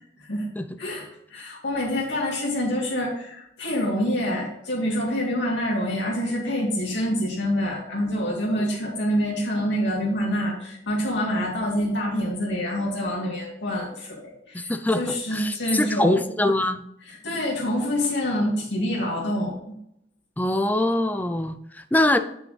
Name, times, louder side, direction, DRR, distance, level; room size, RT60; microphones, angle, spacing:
voice 1, 0.8-16.2 17.0-19.7, equal, 85° left, -3 dB, 2.3 m, -26 dB
voice 2, 14.5-16.8 20.4-22.2, left 1 dB, 10° left, 9 dB, 0.4 m, -23 dB
7.7 x 6.1 x 3.3 m, 0.76 s
head